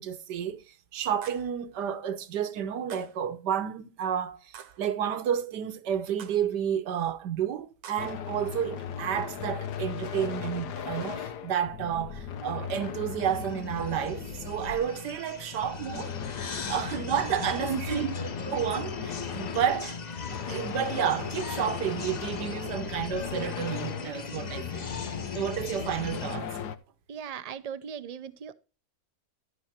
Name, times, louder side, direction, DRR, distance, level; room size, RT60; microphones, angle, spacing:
voice 1, 0.0-16.2 16.7-20.0 20.5-26.6, right 9 dB, 90° right, 1.6 m, -31 dB
sound 1, 1.2-1.6 2.9-3.3 4.5-4.9 6.2-6.6 7.8-8.2, right 8 dB, 70° right, 1.4 m, -48 dB
sound 2, 8.0-15.1 15.6-26.8, left 8 dB, 80° left, 1.5 m, -37 dB
sound 3, 13.3-26.4, left 4 dB, 35° left, 0.7 m, -40 dB
voice 2, 17.7-18.0 27.1-28.5, right 7 dB, 55° right, 0.4 m, -35 dB
13.0 x 5.0 x 5.8 m
omnidirectional pair, 1.7 m